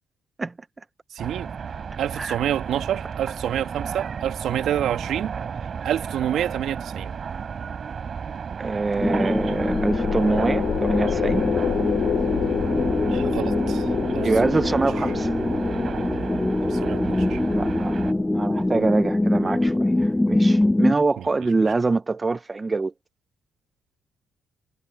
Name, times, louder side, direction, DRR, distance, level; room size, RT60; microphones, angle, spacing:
voice 1, 1.1-1.5 2.0-5.3 5.8-7.1 13.1-13.9 14.1-14.8 16.6-17.4 21.2-21.3, right 10 dB, 75° right, 2.2 m, -28 dB
sound 1, 1.2-18.1, right 6 dB, 50° right, 5.0 m, -33 dB
voice 2, 8.6-11.4 14.2-15.3 17.6-18.0 18.3-22.9, right 3 dB, 25° right, 0.7 m, -25 dB
sound 2, 9.0-20.4, left 10 dB, 70° left, 4.2 m, -30 dB
sound 3, 9.0-20.9, left 1 dB, 10° left, 0.8 m, -24 dB
cardioid pair, 90°, 0 cm